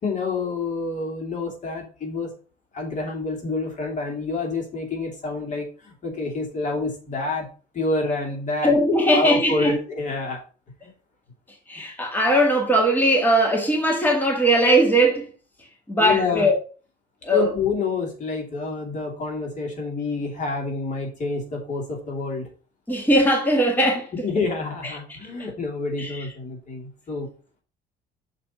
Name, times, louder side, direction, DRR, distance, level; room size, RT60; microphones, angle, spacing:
voice 1, 0.0-2.3 2.7-7.5 7.7-8.8 9.1-10.4 16.0-16.5 17.3-22.5 24.2-27.3, left 3 dB, 45° left, 2.7 m, -28 dB
voice 2, 8.6-9.8 11.7-15.3 15.9-16.6 17.3-17.5 22.9-24.1 26.0-26.2, equal, 10° left, 1.8 m, -19 dB
6.6 x 4.3 x 5.5 m
cardioid pair, 110°, 17 cm